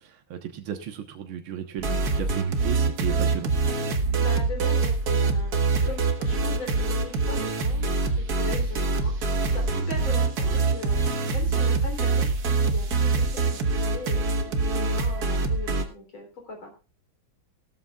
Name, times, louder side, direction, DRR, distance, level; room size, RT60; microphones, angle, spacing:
voice 1, 0.0-3.5, right 9 dB, 80° right, 5 dB, 2.1 m, -35 dB
sound 1, 1.8-15.8, right 3 dB, 50° right, 1.9 m, -24 dB
voice 2, 4.2-12.3 12.6-16.8, left 2 dB, 75° left, 2 dB, 4.3 m, -40 dB
18.0 x 13.0 x 2.4 m, 0.32 s
omnidirectional pair, 2.3 m